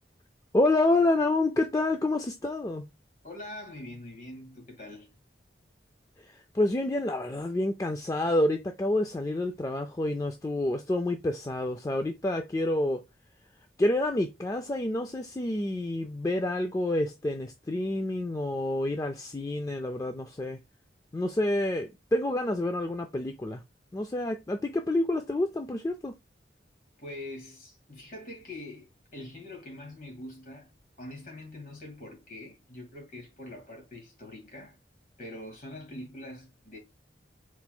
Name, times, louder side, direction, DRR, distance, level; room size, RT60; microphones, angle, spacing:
voice 1, 0.5-2.8 6.2-13.0 13.8-20.6 21.1-23.6 23.9-26.1, left 1 dB, 20° left, 0.3 m, -28 dB
voice 2, 3.2-5.1 27.0-30.7 31.0-34.8 35.2-36.8, left 1 dB, 50° left, 2.0 m, -44 dB
4.3 x 4.3 x 2.2 m
head